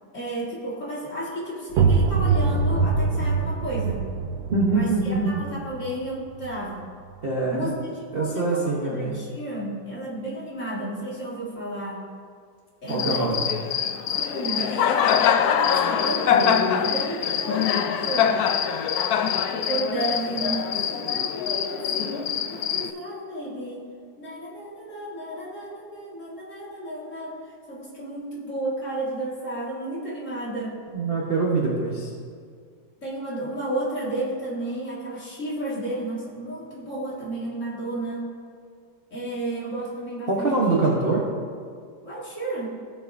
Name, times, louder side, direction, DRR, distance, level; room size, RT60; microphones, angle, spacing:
voice 1, 0.1-4.1 4.7-6.9 7.5-12.1 12.8-13.4 14.1-18.4 19.5-23.8 24.2-30.7 33.0-38.3 39.1-41.0 42.0-42.7, right 1 dB, 40° left, -5 dB, 2.2 m, -32 dB
sound 1, 1.7-7.2, right 4 dB, 80° right, 1.4 m, -24 dB
voice 2, 4.5-5.4 7.2-7.7 8.1-9.1 12.9-13.4 30.9-32.1 40.3-41.2, right 3 dB, 40° right, -5 dB, 1.0 m, -24 dB
Cricket, 12.9-22.9, left 8 dB, 85° left, 0.8 m, -24 dB
16.0 x 6.8 x 2.6 m, 2.1 s
omnidirectional pair, 2.1 m